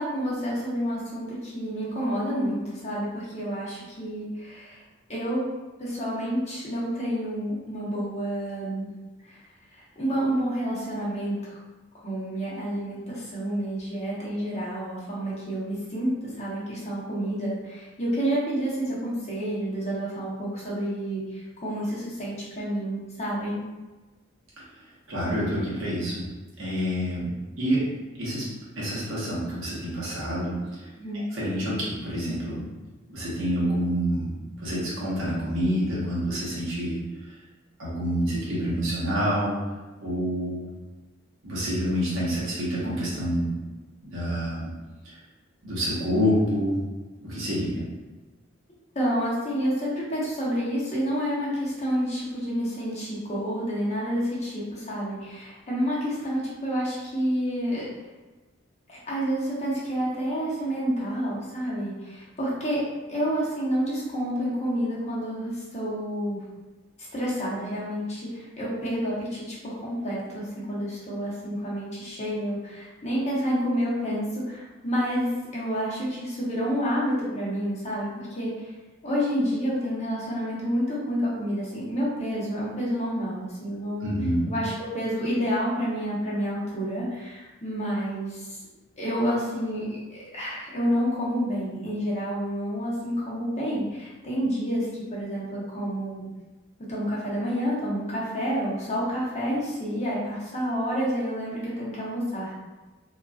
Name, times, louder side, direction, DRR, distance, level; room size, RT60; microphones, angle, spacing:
voice 1, 0.0-4.8 5.1-5.5 5.8-8.9 9.2-9.4 9.7-11.6 12.0-23.6 31.0-31.3 48.9-57.9 58.9-66.4 67.1-78.7 79.0-84.1 84.5-88.6 89.0-96.3 96.9-102.6, equal, 35° left, -7 dB, 0.8 m, -29 dB
voice 2, 25.1-26.3 26.6-27.9 28.2-30.8 31.1-32.7 33.1-37.0 37.8-39.6 40.0-40.7 41.4-43.5 44.0-44.7 45.6-46.8 47.2-47.8 84.0-84.5, equal, 75° right, -7 dB, 1.1 m, -27 dB
2.9 x 2.4 x 2.3 m, 1.2 s
head